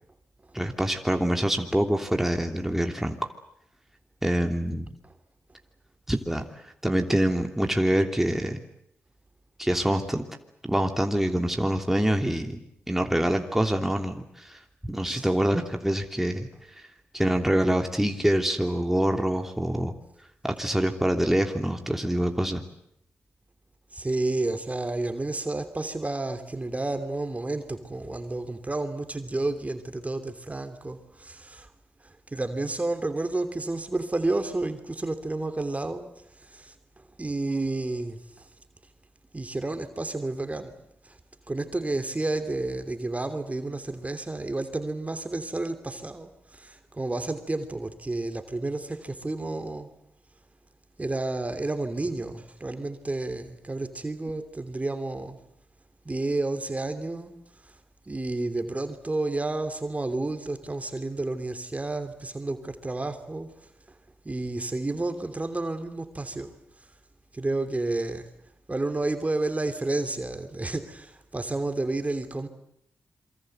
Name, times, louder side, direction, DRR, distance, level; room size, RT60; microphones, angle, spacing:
voice 1, 0.5-3.1 4.2-4.9 6.1-6.5 6.8-8.6 9.6-10.2 10.6-12.6 12.9-16.5 17.1-19.9 20.4-22.6, right 1 dB, 5° right, 3.1 m, -25 dB
voice 2, 23.9-31.7 32.3-36.0 36.4-38.5 39.3-40.7 41.0-41.2 41.5-49.9 51.0-55.4 56.0-57.3 57.6-57.7 58.1-63.5 64.2-66.5 67.3-68.3 68.7-72.5, right 2 dB, 30° right, 3.1 m, -31 dB
27.5 x 23.5 x 8.1 m
supercardioid pair, 40°, 5 cm